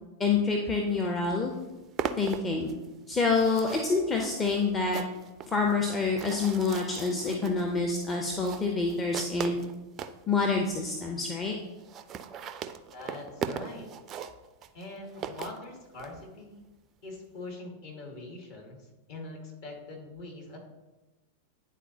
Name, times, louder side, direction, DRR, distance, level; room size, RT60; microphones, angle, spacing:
voice 1, 0.2-1.5 2.2-2.8 3.1-5.0 5.5-9.6 10.3-11.6, left 4 dB, 20° left, 0 dB, 0.7 m, -27 dB
sound 1, 1.0-1.1 1.4-10.2 10.8-10.9 11.1-11.2 11.4-11.5 11.7-16.1, right 7 dB, 30° right, 0.4 m, -39 dB
voice 2, 12.9-13.9 14.7-16.6 17.0-20.6, left 2 dB, 50° left, 0 dB, 1.8 m, -43 dB
10.0 x 4.0 x 2.8 m, 1.1 s
figure-of-eight pair, 90°, 0 cm